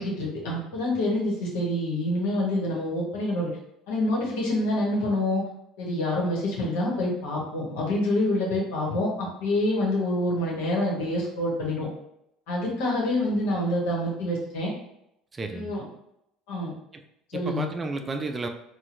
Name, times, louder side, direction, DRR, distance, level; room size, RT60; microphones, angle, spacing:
voice 1, 0.0-3.5 3.9-5.4 5.8-11.9 12.5-14.7 15.5-15.8 16.5-16.7 17.3-17.7, left 1 dB, 75° left, -3 dB, 1.1 m, -27 dB
voice 2, 15.3-15.7 16.9-17.0 17.3-18.5, right 3 dB, 25° right, 5 dB, 0.4 m, -32 dB
4.2 x 2.2 x 2.5 m, 0.80 s
hypercardioid pair, 70°, 0 cm